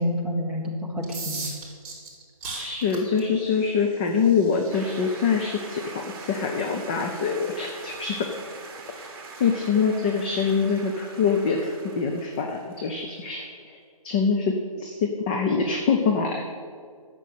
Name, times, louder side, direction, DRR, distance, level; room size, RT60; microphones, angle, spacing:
voice 1, 0.0-1.5, left 1 dB, 5° right, -3 dB, 1.2 m, -28 dB
sound 1, 1.0-12.7, right 3 dB, 20° right, 3.5 m, -43 dB
voice 2, 2.6-8.2 9.4-13.8 14.0-16.4, left 5 dB, 15° left, 2 dB, 0.5 m, -24 dB
sound 2, 4.7-13.0, right 4 dB, 40° right, 1.7 m, -43 dB
12.0 x 7.5 x 8.5 m, 2.1 s
figure-of-eight pair, 150°, 19 cm